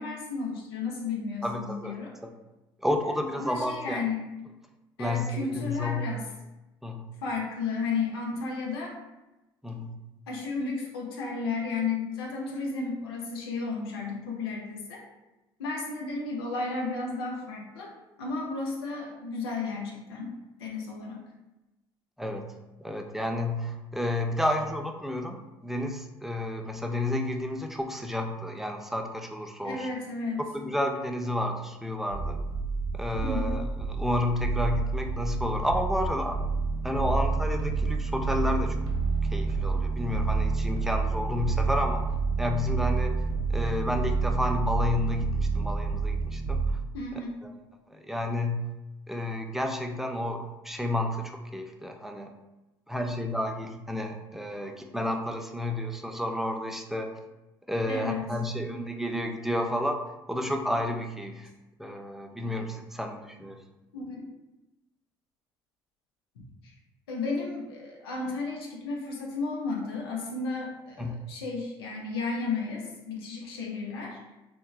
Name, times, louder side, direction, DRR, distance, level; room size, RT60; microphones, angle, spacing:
voice 1, 0.0-2.1 3.3-4.2 5.0-6.3 7.2-9.0 10.3-15.0 15.6-17.9 18.2-20.3 20.6-21.2 29.6-30.4 33.2-33.6 46.9-47.3 57.9-58.2 63.9-64.3 67.1-74.2, left 4 dB, 90° left, 0 dB, 0.5 m, -33 dB
voice 2, 1.4-2.0 2.2-2.3 2.8-4.0 5.0-6.1 6.8-7.1 9.6-10.0 22.2-22.5 22.8-29.9 30.5-32.4 32.9-36.4 36.8-38.8 39.3-42.0 42.4-43.2 43.5-46.8 47.4-47.5 47.9-48.7 49.1-52.3 52.9-57.1 57.7-60.0 60.3-61.5 61.8-63.6 71.0-71.2, left 1 dB, 5° right, 4 dB, 0.3 m, -31 dB
sound 1, 32.1-46.7, right 4 dB, 90° right, 0.4 m, -28 dB
3.1 x 2.1 x 2.3 m, 1.0 s
hypercardioid pair, 60°, 12 cm